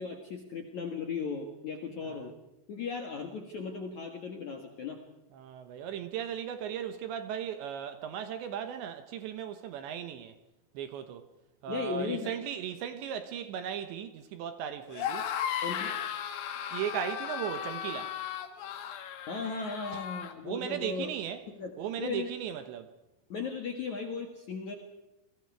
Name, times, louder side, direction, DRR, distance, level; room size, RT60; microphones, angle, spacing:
voice 1, 0.0-2.3 2.7-5.0 11.7-12.3 15.6-15.9 19.3-21.2 21.5-22.3 23.3-24.7, left 5 dB, 60° left, 2.1 m, -37 dB
voice 2, 5.3-10.3 10.7-11.2 11.6-15.3 16.7-18.1 19.9-20.1 20.4-21.4 21.8-22.9, right 9 dB, 70° right, 3.1 m, -37 dB
sound 1, 14.9-20.3, left 9 dB, 85° left, 4.5 m, -36 dB
29.5 x 22.0 x 4.8 m
omnidirectional pair, 6.0 m